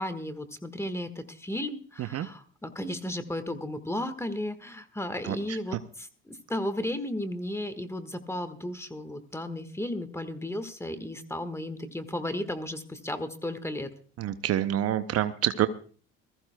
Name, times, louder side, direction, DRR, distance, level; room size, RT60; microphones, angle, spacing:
voice 1, 0.0-13.9, left 1 dB, 10° left, 10 dB, 1.4 m, -34 dB
voice 2, 14.2-15.7, right 12 dB, 55° right, 11 dB, 0.7 m, -27 dB
21.5 x 14.5 x 2.2 m, 0.42 s
supercardioid pair, 70°, 29 cm